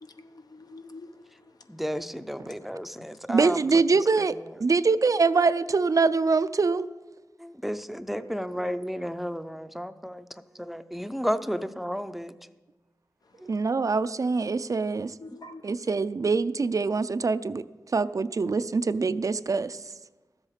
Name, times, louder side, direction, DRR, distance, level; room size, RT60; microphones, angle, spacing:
voice 1, 0.0-1.5 3.0-3.1 8.2-8.7 15.2-15.7, left 2 dB, 70° left, 0.8 m, -47 dB
voice 2, 1.7-3.6 4.2-4.3 7.4-10.3 10.6-12.3, equal, 5° right, 0.5 m, -32 dB
voice 3, 3.3-4.3 4.6-6.9 13.5-15.1 15.6-17.6 17.9-19.8, right 4 dB, 55° right, 0.4 m, -24 dB
13.5 x 7.9 x 5.7 m
wide cardioid pair, 75°, 7 cm